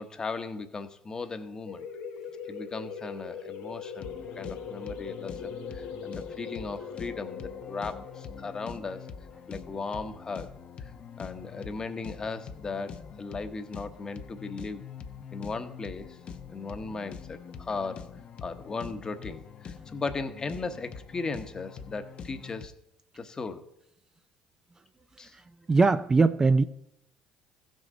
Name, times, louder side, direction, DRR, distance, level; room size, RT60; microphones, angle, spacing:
voice 1, 0.0-1.9 2.5-9.1 9.5-10.5 10.8-10.9 11.2-14.8 15.3-16.2 16.5-18.1 18.4-22.7 23.2-23.6 25.2-25.3, left 4 dB, 30° left, 8 dB, 1.1 m, -37 dB
sound 1, 1.7-11.0, left 6 dB, 80° left, 1.6 m, -41 dB
sound 2, 4.0-22.7, left 6 dB, 50° left, 0.7 m, -44 dB
voice 2, 25.7-26.6, right 3 dB, 25° right, 10 dB, 0.5 m, -21 dB
15.0 x 6.4 x 3.9 m, 0.78 s
supercardioid pair, 75°, 2 cm